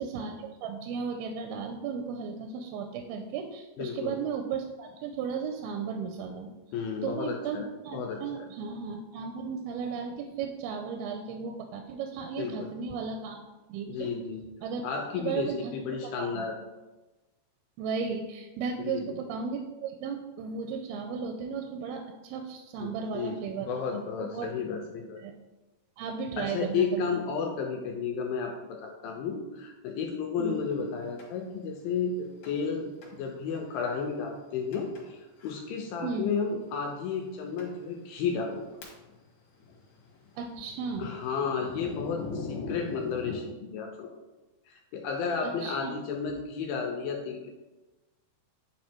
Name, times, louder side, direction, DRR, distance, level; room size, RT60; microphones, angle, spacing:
voice 1, 0.0-6.5 7.0-7.6 7.8-13.4 13.7-14.1 14.6-14.8 15.2-15.7 16.0-16.5 17.8-23.8 24.2-24.5 25.2-25.3 26.0-27.2 30.4-30.7 36.0-36.3 40.4-41.1 45.4-45.9, right 5 dB, 80° right, 4 dB, 2.3 m, -35 dB
voice 2, 3.8-4.2 6.7-7.7 7.9-8.5 12.4-12.7 13.9-14.4 14.8-16.6 18.8-19.2 22.8-25.2 26.4-38.6 41.0-44.1 44.7-47.5, left 5 dB, 80° left, 2 dB, 2.3 m, -33 dB
Thunder, 31.2-31.3 32.4-32.7 33.0-33.1 33.8-33.9 34.7-35.0 35.4-35.6 36.5-36.6 37.2-37.3 37.6-37.7 38.3-39.3 39.5-43.4, left 5 dB, 55° left, 2.3 m, -41 dB
9.2 x 3.2 x 4.4 m, 1.1 s
omnidirectional pair, 4.5 m